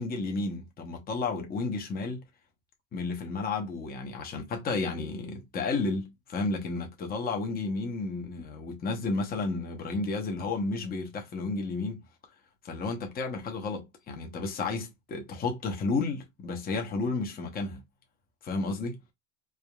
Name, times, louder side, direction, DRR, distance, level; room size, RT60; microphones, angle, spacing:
voice 1, 0.0-2.2 2.9-12.0 12.6-17.8 18.4-19.0, left 3 dB, 25° left, 0.8 m, -32 dB
3.5 x 2.1 x 2.2 m
hypercardioid pair, 100°, 40 cm